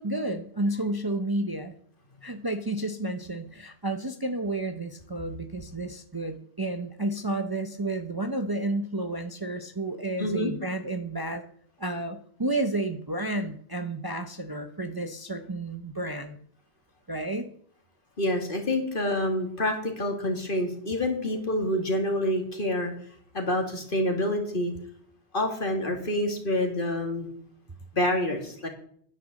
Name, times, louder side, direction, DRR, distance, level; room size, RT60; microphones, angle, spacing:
voice 1, 0.0-1.7 2.2-11.4 11.8-16.4 17.1-17.5, right 2 dB, 25° right, 7 dB, 0.7 m, -31 dB
voice 2, 10.2-10.5 18.2-22.9 23.3-24.7 25.3-27.3 27.9-28.7, left 1 dB, 50° left, 3 dB, 2.6 m, -27 dB
10.0 x 9.1 x 7.5 m, 0.62 s
omnidirectional pair, 1.1 m